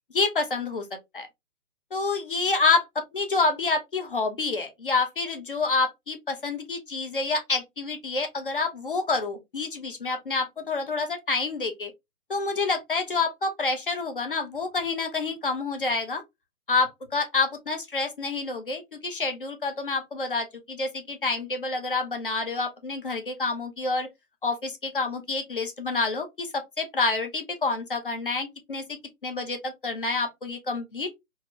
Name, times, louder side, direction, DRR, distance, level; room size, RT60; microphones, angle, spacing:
voice 1, 0.1-0.9 1.1-1.3 1.9-11.9 12.3-16.2 16.7-24.1 24.4-31.1, left 3 dB, 40° left, 0.5 m, -28 dB
2.8 x 2.4 x 2.8 m
figure-of-eight pair, 130°, 45 cm